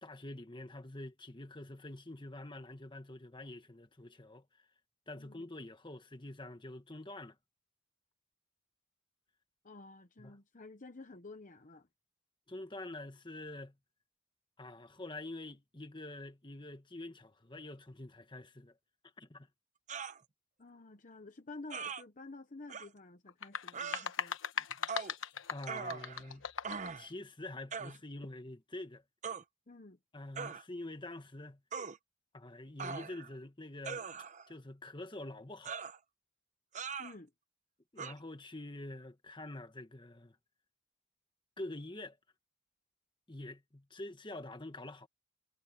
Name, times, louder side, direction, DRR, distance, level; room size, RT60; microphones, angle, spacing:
voice 1, 0.0-4.6 5.1-7.4 10.2-10.4 12.5-13.7 14.6-18.8 19.2-19.5 25.5-26.5 27.0-29.0 30.1-31.6 32.3-34.0 34.5-35.8 37.9-40.4 41.6-42.2 43.3-45.1, left 2 dB, 25° left, 1.4 m, -46 dB
voice 2, 5.2-5.5 9.6-11.9 20.6-24.3 29.7-30.0 37.0-37.3, left 3 dB, 40° left, 0.9 m, -51 dB
sound 1, 19.9-20.2 21.7-22.0 22.7-22.9 23.7-24.1 24.9-25.1 25.7-26.3 26.6-27.1 27.7-28.0 29.2-29.4 30.4-30.6 31.7-32.0 32.8-33.3 33.8-34.5 35.6-36.0 36.7-37.1 38.0-38.1, right 5 dB, 35° right, 0.8 m, -41 dB
sound 2, 23.3-26.9, left 7 dB, 65° left, 1.1 m, -39 dB
head